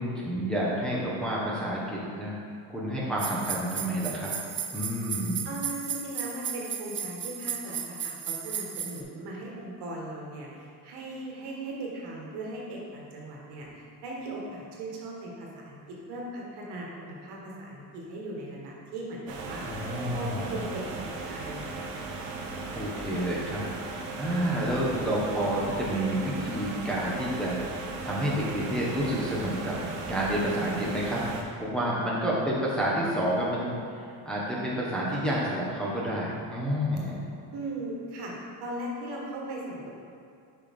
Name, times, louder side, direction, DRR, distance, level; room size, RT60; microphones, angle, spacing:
voice 1, 0.0-2.4 2.7-4.3 4.7-5.4 19.6-20.7 22.7-37.2, right 1 dB, ahead, -7 dB, 1.3 m, -29 dB
sound 1, 3.2-9.0, right 8 dB, 30° right, 0.5 m, -35 dB
voice 2, 5.4-21.9 37.5-39.9, right 1 dB, 60° right, -3 dB, 1.6 m, -38 dB
sound 2, 19.3-31.4, right 3 dB, 85° right, 1.1 m, -37 dB
6.4 x 5.3 x 3.7 m, 2.3 s
cardioid pair, 110°, 43 cm